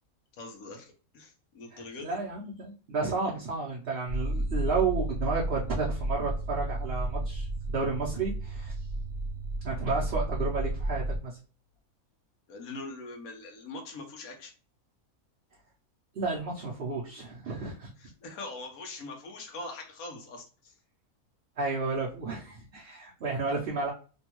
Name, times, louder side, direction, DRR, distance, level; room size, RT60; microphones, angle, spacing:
voice 1, 0.4-2.2 12.5-14.5 18.0-20.7, left 2 dB, 75° left, 3 dB, 1.3 m, -42 dB
voice 2, 1.7-8.7 9.6-11.4 16.1-17.9 21.6-23.9, right 4 dB, 55° right, -3 dB, 0.8 m, -32 dB
sound 1, 4.1-11.2, right 1 dB, 20° right, 0.7 m, -32 dB
3.4 x 2.3 x 2.9 m, 0.37 s
omnidirectional pair, 1.5 m